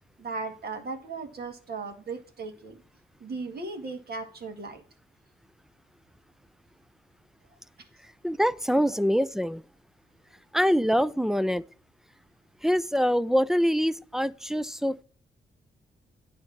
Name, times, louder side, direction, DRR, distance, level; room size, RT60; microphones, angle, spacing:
voice 1, 0.2-2.8 3.2-4.8, right 3 dB, 55° right, 1.9 m, -37 dB
voice 2, 8.2-9.6 10.5-11.6 12.6-15.0, equal, ahead, 0.4 m, -24 dB
9.5 x 3.4 x 7.0 m
supercardioid pair, 55°, 19 cm